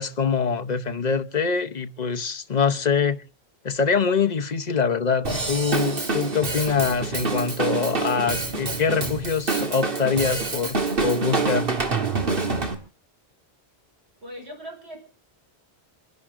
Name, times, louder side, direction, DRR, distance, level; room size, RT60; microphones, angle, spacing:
voice 1, 0.0-3.2 3.6-11.7, left 5 dB, 40° left, 1.0 m, -24 dB
Drum kit / Drum, 5.2-12.7, right 3 dB, 55° right, 2.1 m, -26 dB
voice 2, 14.2-15.1, equal, 75° right, 5.9 m, -39 dB
27.5 x 11.0 x 3.7 m
omnidirectional pair, 1.1 m